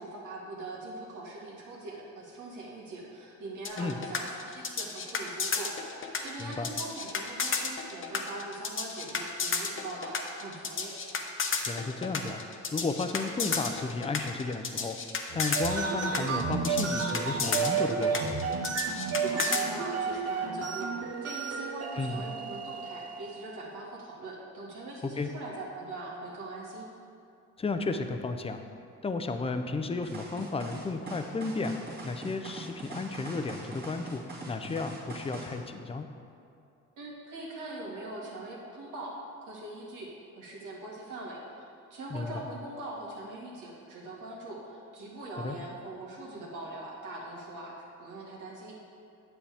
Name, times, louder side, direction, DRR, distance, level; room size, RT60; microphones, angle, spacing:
voice 1, 0.0-10.9 19.2-26.9 37.0-40.1 40.4-48.8, right 2 dB, 80° right, -4 dB, 2.0 m, -42 dB
sound 1, 3.6-19.6, left 5 dB, 45° left, 0.9 m, -32 dB
voice 2, 6.4-6.7 11.7-12.4 12.7-15.0 15.3-18.2 22.0-22.3 25.0-25.3 27.6-28.6 29.0-31.7 32.0-36.1 42.1-42.3 45.4-45.5, left 3 dB, 20° left, 7 dB, 0.6 m, -33 dB
sound 2, 15.3-23.6, right 5 dB, 55° right, 0.8 m, -32 dB
sound 3, 30.0-35.6, right 2 dB, 35° right, 2.0 m, -42 dB
9.7 x 7.3 x 3.5 m, 2.5 s
cardioid pair, 90°, 30 cm